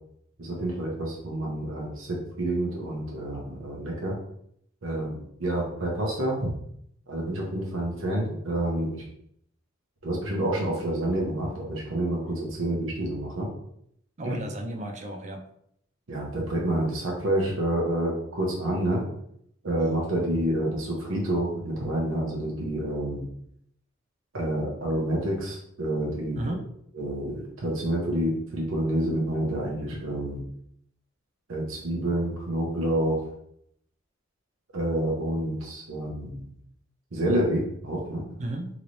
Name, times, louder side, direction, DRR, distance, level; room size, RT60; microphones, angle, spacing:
voice 1, 0.4-4.1 4.8-6.5 7.1-9.0 10.0-13.5 14.2-14.4 16.1-19.0 19.6-23.2 24.3-26.4 26.9-30.4 31.5-33.2 34.7-36.5 37.1-38.2, right 1 dB, 75° right, -3 dB, 0.8 m, -28 dB
voice 2, 14.2-15.4 26.3-26.6 38.4-38.8, right 1 dB, 35° right, 4 dB, 0.4 m, -33 dB
3.0 x 3.0 x 2.6 m, 0.72 s
head